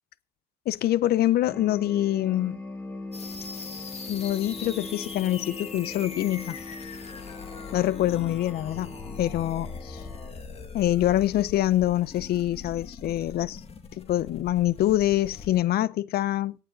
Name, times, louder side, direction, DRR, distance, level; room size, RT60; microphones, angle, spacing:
voice 1, 0.7-2.6 4.1-6.6 7.7-8.9 9.2-10.0 10.7-13.6 14.0-16.6, left 13 dB, 65° left, 0.8 m, -25 dB
sound 1, 1.5-10.3, left 2 dB, 10° left, 3.3 m, -41 dB
sound 2, 3.1-15.6, left 5 dB, 35° left, 2.5 m, -41 dB
18.0 x 11.0 x 4.1 m
cardioid pair, 110°, 17 cm